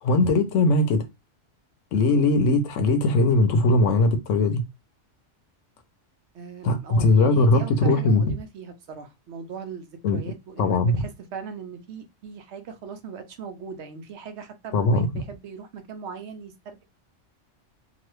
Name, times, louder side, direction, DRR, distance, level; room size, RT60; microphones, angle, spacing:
voice 1, 0.0-1.0 1.9-4.6 6.6-8.2 10.0-10.2 10.6-11.0 14.7-15.2, left 2 dB, 85° left, 1.0 m, -20 dB
voice 2, 6.3-16.8, right 6 dB, 70° right, 0.9 m, -39 dB
2.9 x 2.3 x 3.1 m
omnidirectional pair, 1.3 m